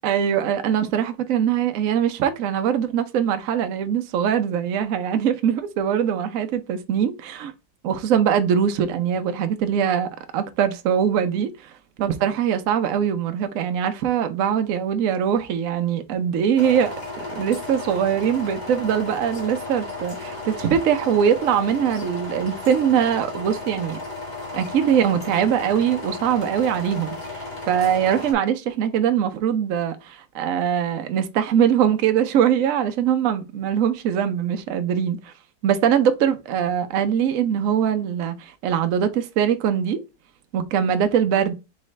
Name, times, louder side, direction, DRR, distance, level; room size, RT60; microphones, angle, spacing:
voice 1, 0.0-7.5 7.8-11.7 12.0-24.0 24.5-27.1 27.7-35.3 35.6-40.0 40.5-41.5, right 8 dB, 75° right, 0.7 m, -22 dB
sound 1, 16.6-28.3, left 3 dB, 25° left, 1.2 m, -34 dB
4.2 x 3.7 x 3.1 m
omnidirectional pair, 2.2 m